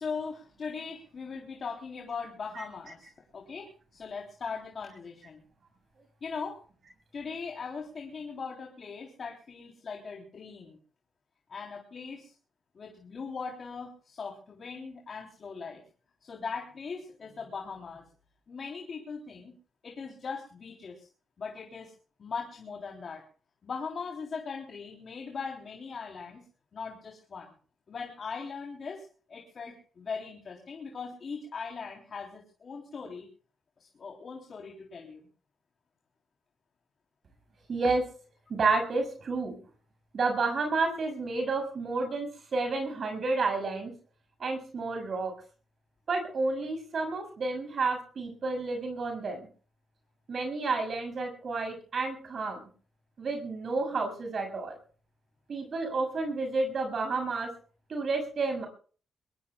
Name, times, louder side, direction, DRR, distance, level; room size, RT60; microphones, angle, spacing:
voice 1, 0.0-5.4 6.2-6.6 7.1-10.8 11.5-12.3 12.7-15.8 16.2-18.0 18.5-19.5 19.8-21.1 21.4-21.9 22.2-23.2 23.6-26.4 26.7-27.5 27.9-33.3 33.9-35.2, left 5 dB, 50° left, 0 dB, 3.5 m, -40 dB
voice 2, 37.7-38.0 38.5-39.6 40.1-43.9 44.4-45.3 46.1-49.4 50.3-52.6 53.2-54.8 55.5-57.5 57.9-58.7, right 3 dB, 55° right, 4 dB, 6.8 m, -30 dB
22.5 x 22.5 x 2.4 m, 0.40 s
cardioid pair, 85°, 0 cm